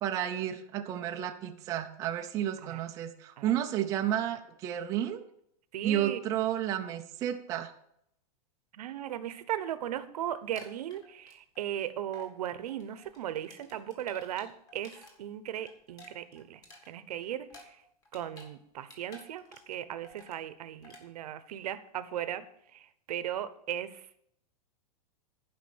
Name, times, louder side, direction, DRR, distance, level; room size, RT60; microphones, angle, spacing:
voice 1, 0.0-5.2 5.8-7.7, right 11 dB, 15° right, 4 dB, 0.5 m, -32 dB
voice 2, 5.7-6.2 8.7-17.8 18.1-22.4 22.7-24.2, right 11 dB, 70° right, 13 dB, 0.9 m, -37 dB
sound 1, 10.4-11.8 12.1-12.3 12.7-15.1 15.4-18.5 18.8-19.8 20.0-20.4 20.8-21.0, left 2 dB, 20° left, 1.7 m, -53 dB
11.5 x 5.1 x 7.2 m, 0.73 s
supercardioid pair, 170°, 20 cm